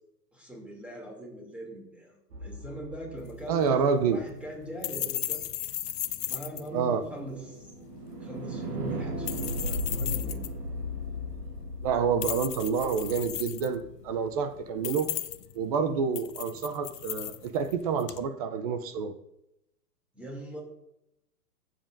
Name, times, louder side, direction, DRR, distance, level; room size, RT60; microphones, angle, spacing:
voice 1, 0.3-5.4 6.3-7.7 8.2-10.6 20.1-20.6, right 1 dB, 5° right, -1 dB, 2.6 m, -41 dB
sound 1, 2.3-4.5 6.3-14.4, equal, 85° right, 1.9 m, -37 dB
sound 2, 3.2-18.3, left 12 dB, 80° left, 0.8 m, -38 dB
voice 2, 3.5-4.2 6.7-7.0 11.8-15.1 15.5-19.1, right 6 dB, 25° right, 10 dB, 0.4 m, -28 dB
15.0 x 7.5 x 2.6 m, 0.84 s
hypercardioid pair, 130°, 47 cm